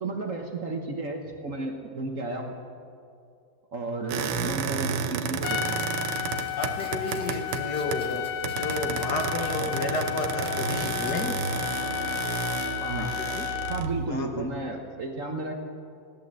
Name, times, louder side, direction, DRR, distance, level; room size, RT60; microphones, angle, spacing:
voice 1, 0.0-2.5 3.7-5.8 12.8-13.1 13.7-15.6, right 2 dB, 45° right, 3 dB, 1.3 m, -32 dB
sound 1, 4.1-8.1 8.4-14.1, right 6 dB, 80° right, 1.6 m, -32 dB
voice 2, 4.4-4.8 6.5-11.4 13.0-13.5 14.1-14.5, left 2 dB, 60° left, 3 dB, 1.9 m, -32 dB
Trumpet, 5.4-13.9, left 13 dB, 85° left, 1.4 m, -33 dB
sound 2, 5.4-11.3, equal, 5° left, 1.3 m, -47 dB
16.5 x 11.0 x 7.6 m, 2.4 s
omnidirectional pair, 2.1 m